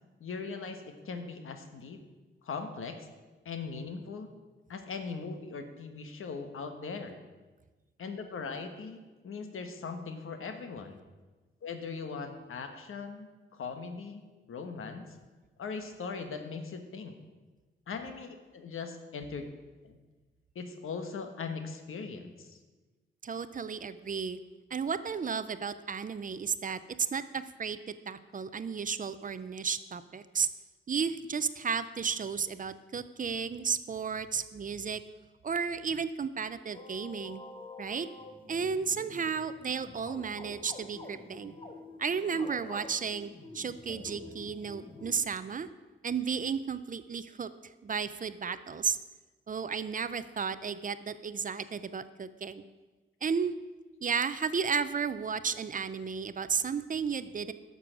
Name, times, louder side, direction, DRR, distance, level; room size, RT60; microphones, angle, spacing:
voice 1, 0.2-2.0 2.4-3.1 3.4-4.3 4.7-7.2 8.0-11.0 11.6-15.1 15.6-17.2 17.9-19.5 19.8-20.0 20.5-22.6, left 5 dB, 85° left, 7 dB, 1.3 m, -40 dB
voice 2, 23.2-24.4 24.7-27.8 28.1-30.5 30.9-35.0 35.4-37.4 37.8-38.1 38.5-41.5 42.0-45.7 46.0-47.5 47.8-49.0 49.5-52.6 53.2-53.5 54.0-57.5, right 6 dB, 40° right, 13 dB, 0.5 m, -33 dB
sound 1, 36.7-45.2, left 2 dB, 25° left, 1.0 m, -48 dB
12.0 x 6.9 x 6.1 m, 1.3 s
wide cardioid pair, 130°, 21 cm